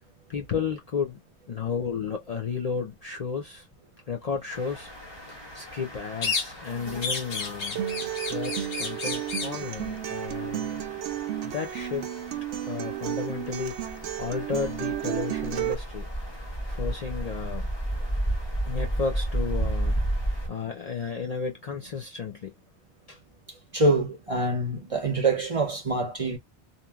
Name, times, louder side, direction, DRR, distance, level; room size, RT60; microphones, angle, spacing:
voice 1, 0.3-1.2 1.5-3.7 4.1-4.9 5.3-7.8 8.3-10.9 11.4-12.1 12.7-16.1 16.6-17.7 18.6-20.0 20.5-22.5 23.1-23.2, left 6 dB, 45° left, 0.5 m, -33 dB
sound 1, 4.5-20.5, right 1 dB, 25° left, 1.1 m, -34 dB
sound 2, 6.2-6.7 7.0-9.6, left 4 dB, 80° left, 1.3 m, -32 dB
Acoustic guitar, 7.8-15.7, right 12 dB, 85° right, 0.9 m, -32 dB
voice 2, 23.7-26.4, right 2 dB, 40° right, 0.6 m, -25 dB
2.9 x 2.6 x 2.3 m
omnidirectional pair, 1.1 m